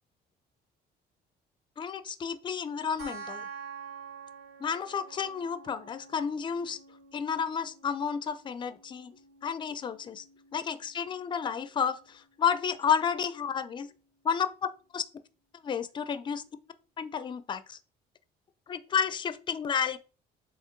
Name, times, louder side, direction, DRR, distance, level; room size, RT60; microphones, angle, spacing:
voice 1, 1.8-3.4 4.6-6.8 7.1-9.2 9.4-10.2 10.5-13.9 14.2-15.0 15.6-16.4 17.0-17.8 18.7-20.0, left 7 dB, 25° left, 0.5 m, -31 dB
sound 1, 3.0-14.0, right 5 dB, 60° right, 2.9 m, -49 dB
7.4 x 3.0 x 4.4 m
cardioid pair, 150°, 17 cm